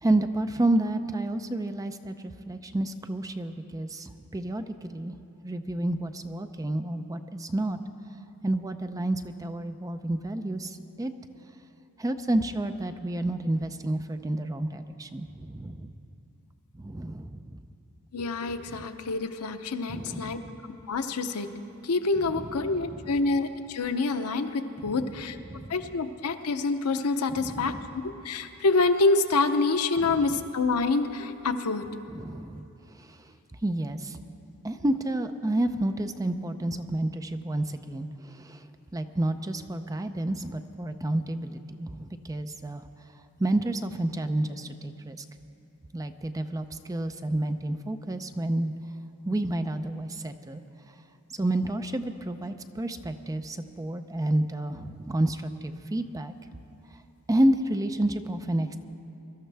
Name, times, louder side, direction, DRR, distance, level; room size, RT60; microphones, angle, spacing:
voice 1, 0.0-5.1 5.4-7.8 8.4-11.1 12.0-15.9 16.8-17.6 18.7-18.9 19.9-20.6 22.2-23.2 24.8-25.2 25.5-25.8 27.3-27.8 30.0-30.3 32.1-32.7 33.0-33.3 33.6-34.2 34.6-38.7 38.9-42.8 43.4-45.2 45.9-48.7 49.2-50.6 51.3-56.6 57.3-58.8, right 1 dB, 15° right, 8 dB, 0.4 m, -30 dB
voice 2, 18.1-21.5 21.8-25.4 25.7-27.7 28.2-31.8, left 3 dB, 85° left, 8 dB, 0.7 m, -27 dB
23.0 x 12.5 x 3.4 m, 2.8 s
head